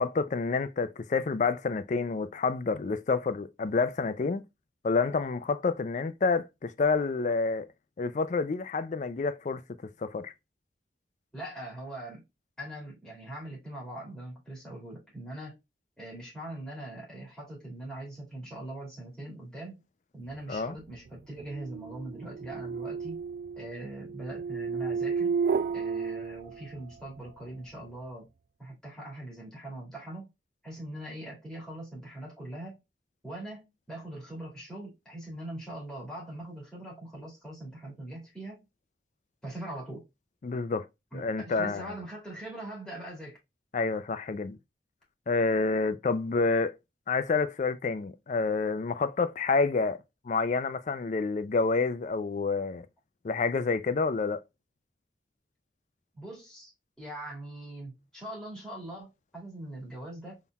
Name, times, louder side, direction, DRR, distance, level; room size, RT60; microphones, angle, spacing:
voice 1, 0.0-4.4 4.8-7.7 8.0-9.6 10.0-10.3 20.5-20.8 40.4-40.9 41.1-41.9 43.7-44.6 45.3-46.7 47.1-52.9 53.2-54.4, left 4 dB, 40° left, 0.4 m, -28 dB
voice 2, 11.3-12.2 12.6-15.6 16.0-19.8 20.1-23.2 23.6-25.3 25.7-28.3 28.6-30.3 30.6-32.8 33.2-38.6 39.4-40.1 41.1-43.4 56.2-56.7 57.0-60.4, right 1 dB, 5° left, 2.1 m, -42 dB
sound 1, 20.6-27.1, right 5 dB, 55° right, 0.3 m, -33 dB
4.0 x 3.8 x 2.3 m
head